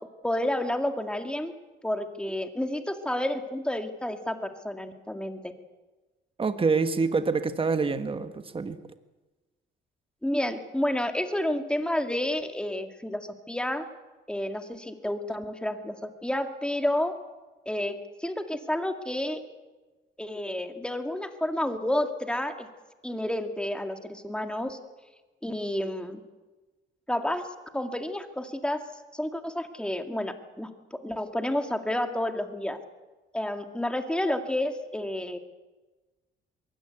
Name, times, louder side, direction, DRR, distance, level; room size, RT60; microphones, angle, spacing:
voice 1, 0.2-1.5 1.8-5.5 10.2-13.8 14.3-17.1 17.7-19.4 20.2-22.7 23.0-24.8 25.4-26.2 27.1-28.8 29.1-32.8 33.3-35.4, left 1 dB, 5° left, 6 dB, 2.2 m, -30 dB
voice 2, 6.4-8.8, right 4 dB, 25° right, 9 dB, 1.4 m, -26 dB
22.0 x 17.0 x 8.1 m, 1.2 s
cardioid pair, 90°, 20 cm